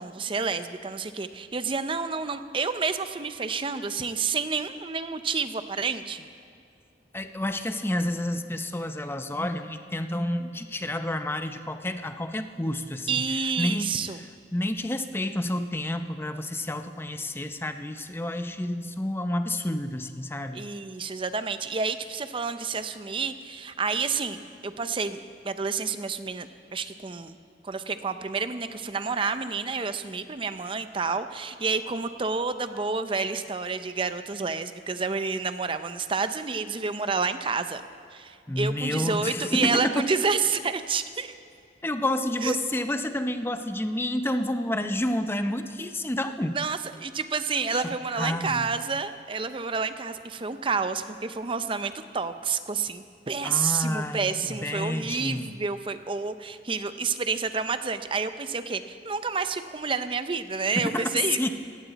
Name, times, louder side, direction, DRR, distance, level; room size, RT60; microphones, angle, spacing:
voice 1, 0.0-6.2 13.1-14.2 20.5-27.4 27.6-37.8 38.1-41.3 42.4-42.6 46.5-61.4, right 4 dB, 30° right, 10 dB, 0.6 m, -29 dB
voice 2, 7.1-13.2 13.6-13.9 14.5-20.7 38.5-40.1 41.8-46.6 47.7-47.8 48.2-48.7 53.4-55.5 60.8-61.1 61.4-61.5, left 1 dB, 15° left, 8 dB, 0.6 m, -29 dB
18.0 x 16.0 x 4.1 m, 2.2 s
head